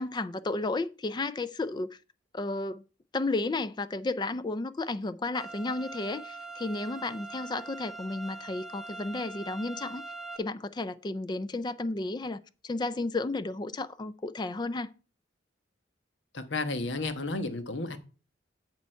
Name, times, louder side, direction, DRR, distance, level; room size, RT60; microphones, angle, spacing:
voice 1, 0.0-2.0 2.3-2.8 3.1-10.0 10.4-14.9, left 2 dB, 25° left, 0.4 m, -33 dB
sound 1, 5.3-10.4, right 3 dB, ahead, 1.0 m, -43 dB
voice 2, 16.3-18.0, left 3 dB, 70° left, 1.2 m, -32 dB
8.2 x 6.8 x 4.4 m
head